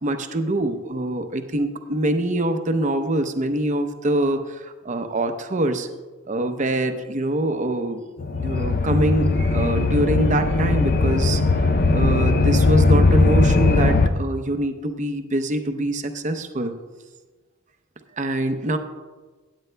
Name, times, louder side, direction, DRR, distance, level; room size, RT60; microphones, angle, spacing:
voice 1, 0.0-5.9 6.3-8.0 8.4-11.4 11.9-16.7 18.2-18.8, right 1 dB, 35° right, 7 dB, 0.7 m, -24 dB
sound 1, 8.2-14.1, left 3 dB, 45° left, 0.6 m, -19 dB
17.0 x 8.6 x 2.2 m, 1.3 s
head